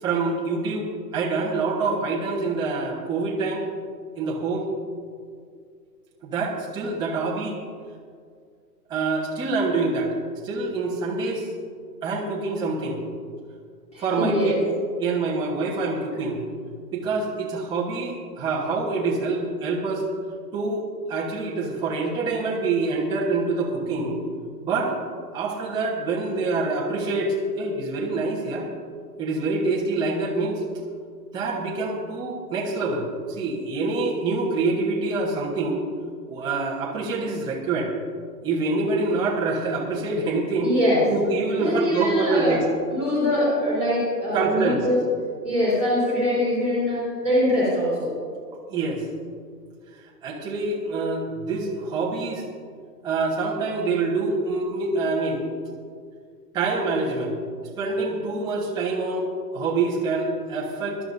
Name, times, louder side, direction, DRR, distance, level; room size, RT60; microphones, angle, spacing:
voice 1, 0.0-3.7 4.1-4.7 6.2-7.6 8.9-10.1 10.4-11.4 12.0-13.0 14.0-14.5 15.0-16.4 16.9-20.0 20.5-20.8 21.1-24.2 24.6-24.9 25.3-28.6 29.2-30.6 31.3-35.8 36.3-37.9 38.4-40.7 41.1-42.6 44.3-44.8 48.7-49.0 50.2-52.4 53.0-55.4 56.5-57.3 57.8-59.3 59.5-61.0, right 3 dB, 10° right, -4 dB, 1.0 m, -26 dB
voice 2, 13.9-14.6 40.6-41.0 41.5-42.6 42.9-45.0 45.4-48.1, left 1 dB, 15° left, -10 dB, 3.9 m, -23 dB
21.0 x 12.5 x 2.6 m, 2.1 s
hypercardioid pair, 165°, 49 cm